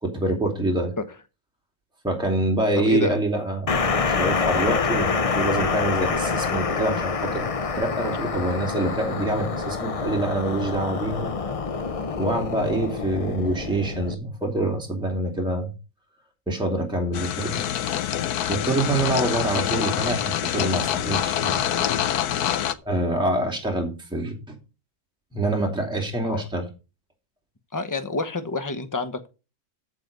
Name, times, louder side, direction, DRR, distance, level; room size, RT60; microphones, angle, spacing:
voice 1, 0.0-0.9 2.0-7.5 7.7-11.3 12.2-15.7 16.5-17.6 18.5-21.7 22.8-24.6 25.3-26.7, right 1 dB, 5° right, 1 dB, 2.7 m, -26 dB
voice 2, 2.7-3.2 9.1-9.2 26.2-26.4 27.7-29.3, left 3 dB, 15° left, 9 dB, 0.9 m, -28 dB
sound 1, 3.7-14.1, left 5 dB, 40° left, 0.5 m, -26 dB
sound 2, 17.1-22.7, left 10 dB, 85° left, 1.3 m, -25 dB
14.0 x 5.0 x 5.3 m, 0.31 s
omnidirectional pair, 1.6 m